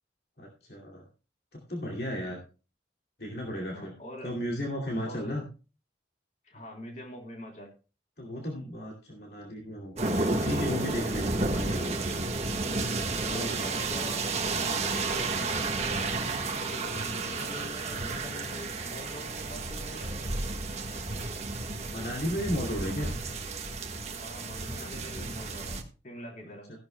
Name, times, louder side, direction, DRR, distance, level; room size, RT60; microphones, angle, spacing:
voice 1, 0.4-1.0 1.5-2.4 3.2-3.9 4.2-5.5 8.2-12.0 13.3-13.8 21.9-23.1, equal, 60° left, -1 dB, 2.4 m, -34 dB
voice 2, 3.7-4.3 5.0-5.4 6.4-7.7 13.2-14.2 14.8-20.4 24.1-26.7, left 1 dB, 45° left, 1 dB, 3.3 m, -45 dB
sound 1, 10.0-25.8, right 3 dB, 40° right, 1.3 m, -32 dB
15.5 x 11.5 x 2.2 m, 0.33 s
head